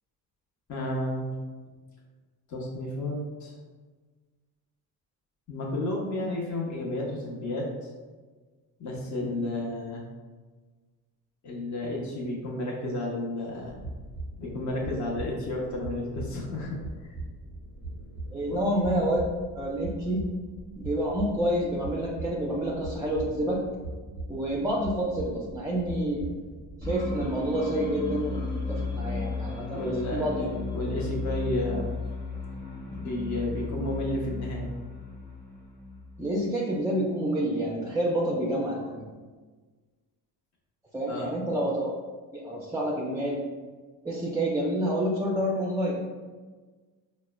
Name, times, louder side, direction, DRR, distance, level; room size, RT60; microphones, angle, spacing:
voice 1, 0.7-1.3 2.5-3.5 5.5-7.7 8.8-10.0 11.4-13.8 14.4-16.8 17.0-17.2 18.5-18.6 29.7-31.9 32.8-34.7 41.1-41.3, left 1 dB, 35° left, -2 dB, 0.9 m, -32 dB
sound 1, 13.6-27.7, right 2 dB, 75° left, 1.1 m, -40 dB
voice 2, 18.3-19.2 19.6-20.3 20.8-23.6 24.3-26.3 26.8-30.5 36.2-39.1 40.9-41.9 42.3-43.4 44.0-46.0, right 1 dB, 10° right, -3 dB, 0.4 m, -28 dB
sound 2, 26.8-36.4, left 3 dB, 10° left, 0.9 m, -34 dB
4.6 x 2.1 x 2.3 m, 1.4 s
supercardioid pair, 65°, 48 cm